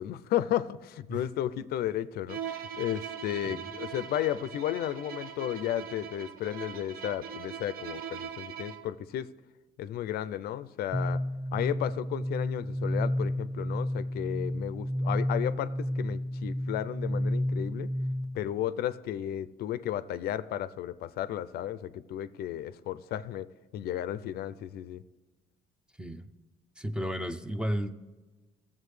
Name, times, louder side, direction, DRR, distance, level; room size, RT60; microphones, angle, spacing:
voice 1, 0.0-9.3 9.8-11.2 11.5-17.9 18.3-23.5 23.7-25.0, left 11 dB, 65° left, 15 dB, 0.4 m, -33 dB
Bowed string instrument, 2.3-9.0, right 8 dB, 60° right, 0.6 m, -41 dB
sound 1, 10.9-18.5, equal, 25° right, 1.6 m, -31 dB
voice 2, 26.0-26.3 26.8-27.9, equal, 5° right, 10 dB, 0.5 m, -33 dB
16.0 x 7.3 x 3.2 m, 1.3 s
cardioid pair, 110°, 17 cm